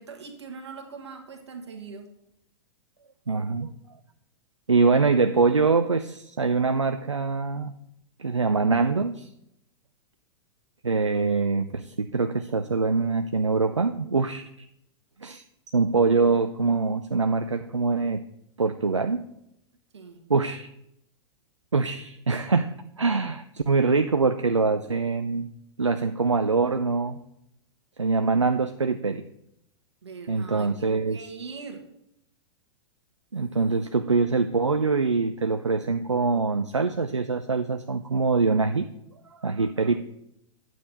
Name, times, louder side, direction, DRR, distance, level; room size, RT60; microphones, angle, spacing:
voice 1, 0.0-2.1 19.9-20.2 30.0-31.8, right 5 dB, 70° right, 5 dB, 1.5 m, -41 dB
voice 2, 3.3-3.7 4.7-7.7 8.2-9.3 10.8-14.4 15.2-15.4 15.7-18.2 18.6-19.3 20.3-20.7 21.7-25.5 25.8-27.2 28.0-29.2 30.3-31.3 33.3-38.9 39.3-40.0, right 4 dB, 90° right, 9 dB, 0.4 m, -24 dB
9.4 x 7.5 x 3.9 m, 0.79 s
figure-of-eight pair, 100°, 15 cm